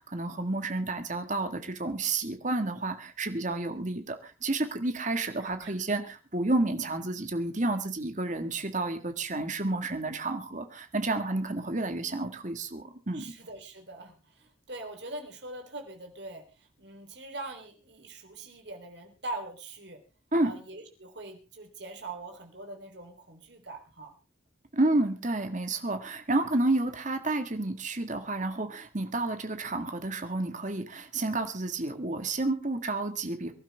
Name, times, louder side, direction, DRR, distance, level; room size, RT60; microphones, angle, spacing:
voice 1, 0.0-13.3 20.3-20.5 24.7-33.5, right 2 dB, 40° right, 7 dB, 1.7 m, -30 dB
voice 2, 5.4-5.7 11.3-11.4 13.1-20.0 20.4-24.1, right 2 dB, 60° right, 4 dB, 3.5 m, -43 dB
24.0 x 12.0 x 3.4 m, 0.31 s
head